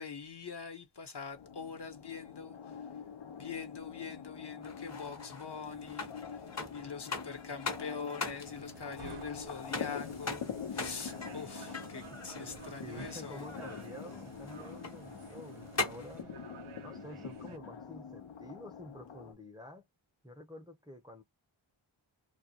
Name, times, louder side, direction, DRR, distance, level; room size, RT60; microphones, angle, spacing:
voice 1, 0.0-2.9 3.4-13.5, left 6 dB, 55° left, 1.1 m, -44 dB
sound 1, 1.3-19.3, left 7 dB, 75° left, 0.8 m, -45 dB
sound 2, 4.6-16.2, left 3 dB, 35° left, 0.9 m, -42 dB
sound 3, 8.4-17.6, right 9 dB, 90° right, 0.7 m, -52 dB
voice 2, 12.7-16.3 16.8-19.8 20.2-21.2, left 1 dB, 10° right, 0.6 m, -49 dB
2.4 x 2.2 x 2.8 m
wide cardioid pair, 60°, 49 cm